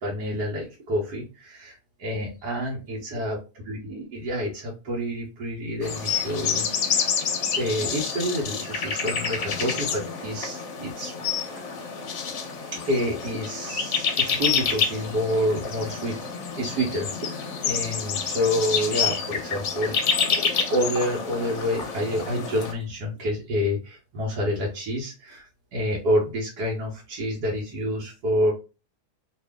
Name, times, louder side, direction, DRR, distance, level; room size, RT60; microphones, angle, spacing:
voice 1, 0.0-3.4 3.7-7.1 7.6-11.1 11.4-11.8 12.7-16.2 16.6-20.0 20.2-20.4 20.7-28.5, equal, 85° right, -4 dB, 1.5 m, -28 dB
sound 1, 5.8-22.7, left 6 dB, 60° left, 0.9 m, -28 dB
2.9 x 2.6 x 3.4 m, 0.31 s
omnidirectional pair, 1.7 m